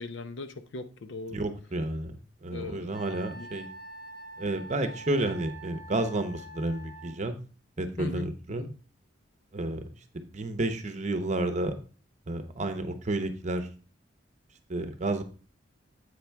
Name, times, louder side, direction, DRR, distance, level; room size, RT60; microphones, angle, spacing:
voice 1, 0.0-1.4 2.5-3.5 8.0-8.7, left 3 dB, 70° left, 0.7 m, -39 dB
voice 2, 1.3-3.7 4.4-7.3 7.8-8.6 9.5-9.9 10.3-11.7 12.3-13.7 14.7-15.2, right 2 dB, 35° right, 0.8 m, -31 dB
Wind instrument woodwind instrument, 2.9-7.2, right 1 dB, 50° left, 1.3 m, -45 dB
8.0 x 5.9 x 3.4 m
head